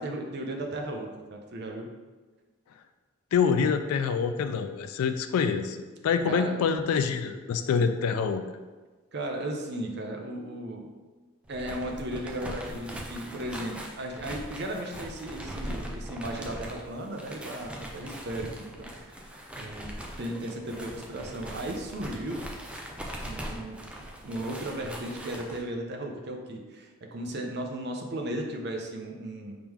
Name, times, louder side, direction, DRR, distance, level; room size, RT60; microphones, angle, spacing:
voice 1, 0.0-1.9 6.3-6.6 9.1-10.9 11.5-19.2 19.6-19.9 20.2-22.4 23.2-23.8 24.2-29.6, right 1 dB, 50° right, 2 dB, 0.6 m, -35 dB
voice 2, 3.3-5.8 6.0-8.4, left 6 dB, 90° left, 9 dB, 0.3 m, -26 dB
sound 1, 11.4-25.6, equal, 5° right, 0.3 m, -41 dB
4.9 x 3.0 x 3.6 m, 1.3 s
head